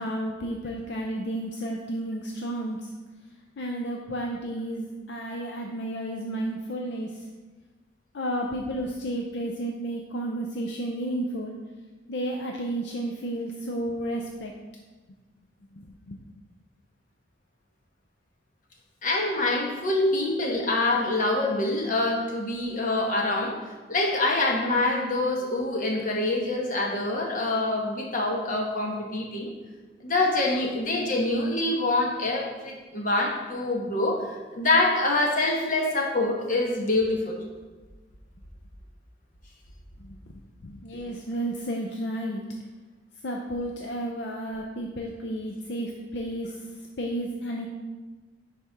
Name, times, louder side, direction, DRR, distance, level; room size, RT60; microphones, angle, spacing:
voice 1, 0.0-2.8 3.6-7.1 8.1-11.6 12.1-14.5 15.8-16.2 40.0-40.2 40.6-42.4 43.2-46.5 47.0-47.7, right 1 dB, 65° left, 1 dB, 0.6 m, -32 dB
voice 2, 19.0-23.6 23.9-29.5 30.0-34.3 34.5-37.4, left 2 dB, 40° left, 0 dB, 1.1 m, -25 dB
9.7 x 4.3 x 3.5 m, 1.3 s
head